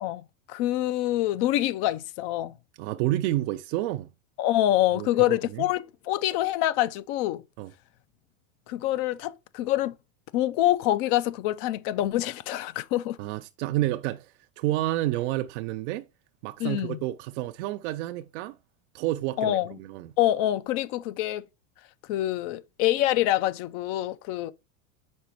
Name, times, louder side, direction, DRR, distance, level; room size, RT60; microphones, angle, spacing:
voice 1, 0.0-2.6 4.4-7.4 8.7-9.9 10.3-13.2 16.6-17.0 19.4-19.7 20.2-21.4 22.1-24.5, left 14 dB, 50° left, 0.6 m, -26 dB
voice 2, 2.8-4.1 4.9-5.7 7.6-7.7 13.2-16.1 16.4-18.6 18.9-20.1, right 15 dB, 60° right, 0.5 m, -30 dB
5.4 x 4.1 x 4.4 m
supercardioid pair, 115°, 41 cm